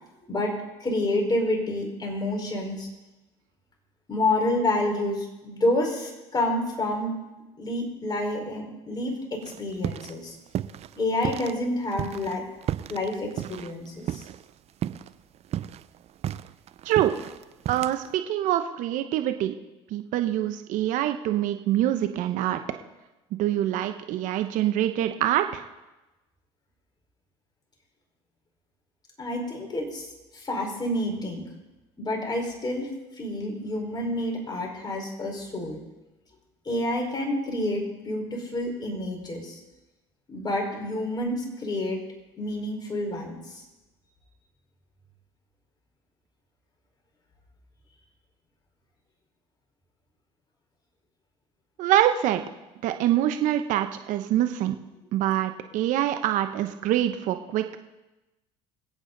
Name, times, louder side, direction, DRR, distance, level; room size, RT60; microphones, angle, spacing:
voice 1, 0.8-2.9 4.1-7.1 7.6-10.3 11.0-12.4 12.9-14.2 29.2-31.4 32.0-32.9 33.2-35.8 36.6-39.6 40.3-42.0 42.4-43.6, left 1 dB, 30° left, 1 dB, 4.8 m, -28 dB
sound 1, 9.4-10.2 10.5-11.6 11.9-14.5 14.8-15.1 15.4-18.2, right 11 dB, 50° right, 0.6 m, -33 dB
voice 2, 17.7-19.6 19.9-22.6 23.4-25.6 51.8-52.4 52.8-54.7 55.1-57.6, right 12 dB, 65° right, 7 dB, 1.0 m, -25 dB
25.5 x 8.5 x 4.0 m, 1.0 s
hypercardioid pair, 75°, 14 cm